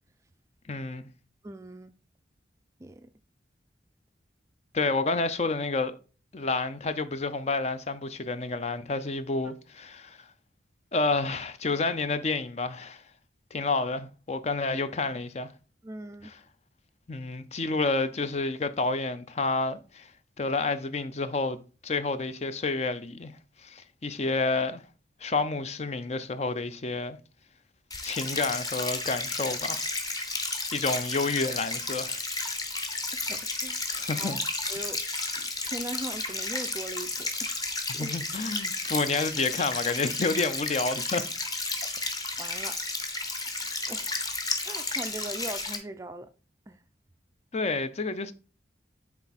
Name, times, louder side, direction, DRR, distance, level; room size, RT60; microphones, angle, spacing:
voice 1, 0.7-1.1 4.7-5.9 6.3-10.2 10.9-13.0 13.5-15.5 16.2-16.3 17.1-20.1 20.4-23.3 23.6-24.8 25.2-27.2 28.0-29.9 30.7-32.2 33.9-34.4 37.9-41.3 47.5-48.3, left 3 dB, 35° left, 0.5 m, -29 dB
voice 2, 1.4-1.9 2.8-3.1 15.8-16.3 33.3-33.8 34.2-34.4 34.7-35.0 35.3-37.6 37.9-38.1 42.4-42.8 43.2-43.3 43.9-44.1 44.6-46.3 46.7-46.8, right 1 dB, 15° right, 0.4 m, -40 dB
sound 1, 27.9-45.8, left 3 dB, 20° left, 1.0 m, -32 dB
8.8 x 3.5 x 4.0 m
head